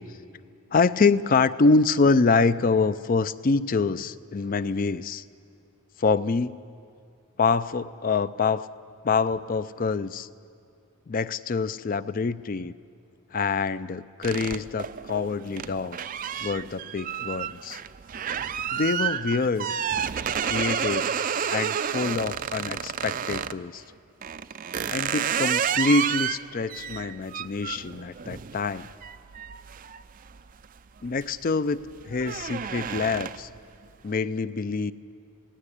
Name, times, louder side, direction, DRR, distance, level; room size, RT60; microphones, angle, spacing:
voice 1, 0.7-5.2 6.0-6.5 7.4-8.7 9.0-10.3 11.1-12.7 13.3-16.0 16.4-17.8 18.7-19.7 20.5-21.1 21.5-23.8 24.9-28.9 31.0-31.8 32.0-33.5 34.0-34.9, left 4 dB, 40° left, 15 dB, 0.4 m, -25 dB
sound 1, 14.2-23.6 24.2-30.7 31.1-31.4 31.7-33.6, right 8 dB, 40° right, 0.4 m, -30 dB
17.5 x 16.5 x 9.9 m, 2.4 s
head